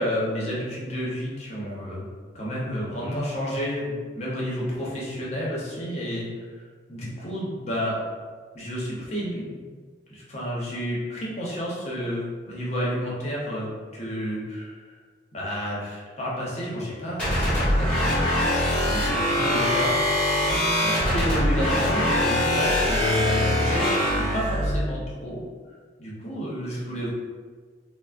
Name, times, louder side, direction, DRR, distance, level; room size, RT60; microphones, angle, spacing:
voice 1, 0.0-2.0 2.3-6.3 6.9-8.0 8.5-9.6 10.1-14.7 15.3-18.2 18.8-19.9 20.7-25.4 26.0-27.1, equal, 40° left, -5 dB, 0.7 m, -30 dB
sound 1, 17.2-24.7, left 1 dB, 5° left, 0.9 m, -23 dB
3.3 x 2.0 x 2.4 m, 1.5 s
head